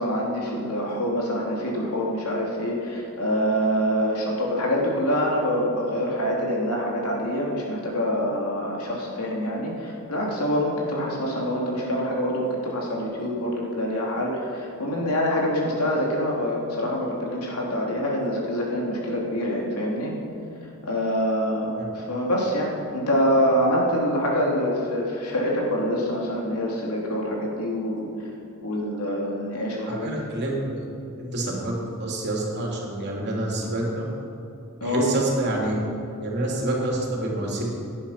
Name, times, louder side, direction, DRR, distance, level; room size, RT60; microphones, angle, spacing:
voice 1, 0.0-20.1 20.8-21.7 21.9-28.1 28.6-30.3 34.8-35.1, equal, 85° left, -2 dB, 3.2 m, -25 dB
voice 2, 30.0-30.8 31.2-31.7 32.0-34.1 34.8-35.7 36.2-37.7, right 1 dB, 50° right, -2 dB, 3.3 m, -27 dB
17.0 x 10.0 x 5.8 m, 2.6 s
head